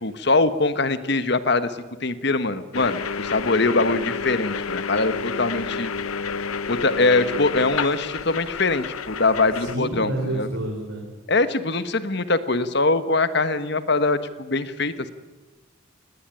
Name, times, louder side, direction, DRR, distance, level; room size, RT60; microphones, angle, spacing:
voice 1, 0.0-5.9 6.7-10.5 11.3-15.1, left 3 dB, 55° left, 12 dB, 1.3 m, -22 dB
sound 1, 2.7-9.8, left 5 dB, 90° left, 0.8 m, -30 dB
voice 2, 9.5-11.1, right 1 dB, 70° right, -1 dB, 4.5 m, -29 dB
19.5 x 18.5 x 10.0 m, 1.3 s
head